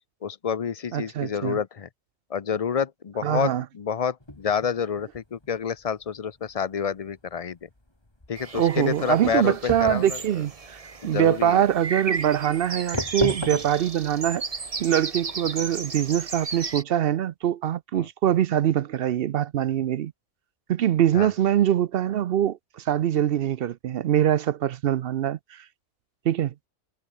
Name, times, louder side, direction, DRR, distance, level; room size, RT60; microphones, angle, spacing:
voice 1, 0.2-1.9 2.3-7.6 8.3-10.2 11.0-11.6 17.9-18.1 21.1-21.3, left 7 dB, 40° left, 0.6 m, -28 dB
voice 2, 0.9-1.6 3.2-3.6 8.5-14.4 14.8-20.1 20.7-25.6 26.2-26.5, right 11 dB, 60° right, 0.7 m, -23 dB
sound 1, 4.2-15.6, left 1 dB, 20° left, 3.2 m, -36 dB
sound 2, 8.4-16.8, right 4 dB, 30° right, 1.1 m, -35 dB
omnidirectional pair, 1.3 m